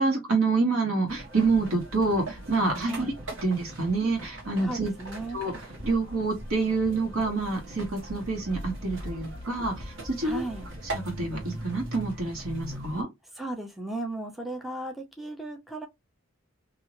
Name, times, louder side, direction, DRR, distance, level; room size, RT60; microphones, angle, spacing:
voice 1, 0.0-4.9 5.3-5.5 5.8-10.5 10.9-13.1, right 3 dB, 85° right, 1.5 m, -27 dB
sound 1, 1.1-13.0, right 1 dB, 60° right, 1.4 m, -40 dB
voice 2, 4.6-5.4 10.2-10.6 13.4-15.9, right 2 dB, ahead, 0.6 m, -35 dB
3.0 x 2.8 x 2.6 m
head